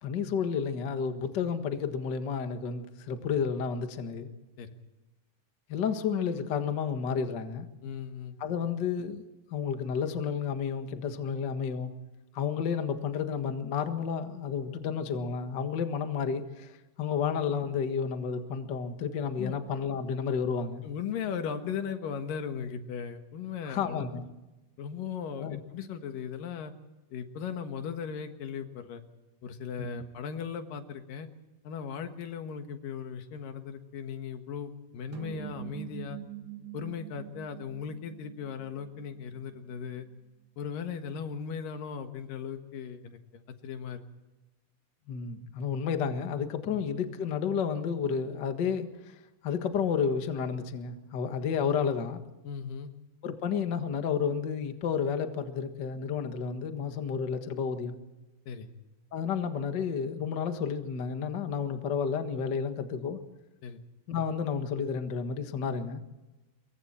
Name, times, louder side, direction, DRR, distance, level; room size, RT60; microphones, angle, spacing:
voice 1, 0.0-4.3 5.7-7.7 8.4-9.2 9.5-11.9 12.3-20.8 23.6-24.2 25.4-25.6 29.8-30.0 45.1-49.1 49.4-52.2 53.2-57.9 59.1-63.2 64.1-66.0, left 6 dB, 90° left, 7 dB, 0.9 m, -31 dB
voice 2, 7.8-8.6 19.4-19.5 20.8-24.1 24.8-26.7 27.1-29.0 29.4-31.3 31.6-36.2 36.7-40.1 40.6-43.2 43.6-44.0 52.4-52.9 58.5-58.7 63.6-63.8, left 7 dB, 65° left, 7 dB, 2.8 m, -37 dB
sound 1, 35.1-39.7, right 12 dB, 85° right, 1.2 m, -44 dB
27.0 x 23.0 x 4.4 m, 1.0 s
omnidirectional pair, 4.8 m